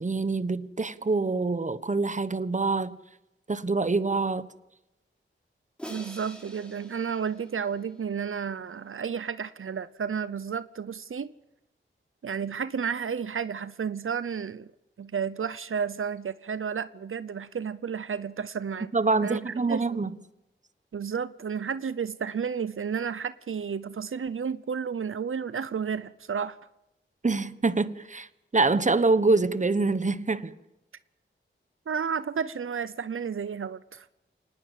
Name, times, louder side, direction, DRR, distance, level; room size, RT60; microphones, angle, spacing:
voice 1, 0.0-3.0 3.5-4.5 18.9-20.1 27.2-28.3 28.5-30.5, right 3 dB, 35° right, 1.2 m, -25 dB
Crash cymbal, 5.8-8.0, equal, 5° left, 5.0 m, -45 dB
voice 2, 5.9-11.3 12.2-14.7 15.0-18.9 19.2-20.0 20.9-26.6 31.9-34.1, right 6 dB, 85° right, 0.8 m, -32 dB
25.5 x 19.5 x 7.5 m
wide cardioid pair, 85°, 21 cm